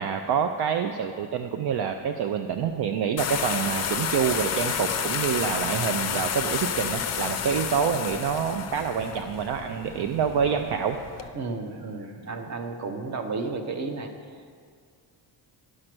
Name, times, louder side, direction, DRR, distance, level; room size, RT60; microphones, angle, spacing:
voice 1, 0.0-11.4 12.0-12.1, right 7 dB, 60° right, 7 dB, 0.5 m, -27 dB
sound 1, 3.2-11.3, left 7 dB, 35° left, 0.5 m, -30 dB
voice 2, 11.3-14.1, right 3 dB, 40° right, 6 dB, 0.8 m, -32 dB
11.0 x 6.5 x 6.0 m, 2.1 s
wide cardioid pair, 170°, 45 cm